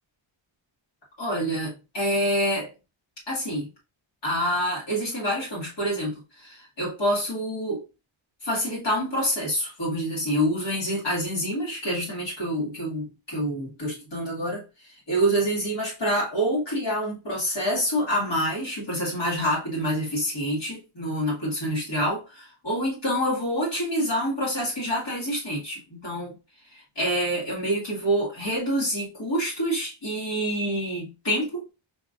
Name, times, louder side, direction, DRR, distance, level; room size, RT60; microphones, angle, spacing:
voice 1, 1.2-2.7 3.3-3.7 4.2-7.8 8.4-26.4 26.7-31.7, equal, 55° left, 2.3 m, -27 dB
4.8 x 3.0 x 2.5 m
wide cardioid pair, 145°, 50 cm